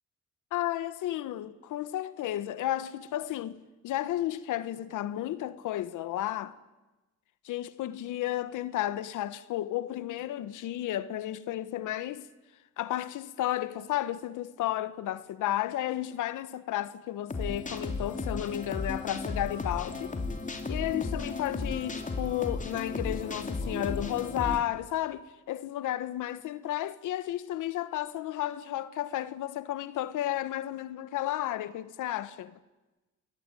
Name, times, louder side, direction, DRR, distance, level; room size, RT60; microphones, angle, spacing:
voice 1, 0.5-6.5 7.4-12.3 12.8-20.2 20.7-32.6, left 13 dB, 85° left, 1.3 m, -33 dB
sound 1, 17.3-24.6, left 3 dB, 25° left, 3.4 m, -34 dB
28.5 x 20.5 x 9.1 m
cardioid pair, 90°, 30 cm